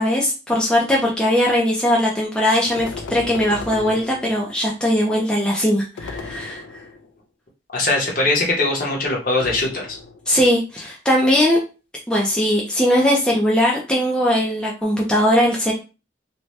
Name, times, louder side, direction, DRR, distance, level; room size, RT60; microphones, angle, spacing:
voice 1, 0.0-6.6 10.3-11.6 12.1-15.7, left 1 dB, 5° left, -3 dB, 0.4 m, -19 dB
sound 1, 2.8-4.7 6.0-7.2 9.4-10.4, left 4 dB, 85° left, 0.4 m, -35 dB
voice 2, 7.7-10.0, left 2 dB, 45° left, -1 dB, 0.9 m, -21 dB
2.7 x 2.2 x 3.1 m, 0.32 s
head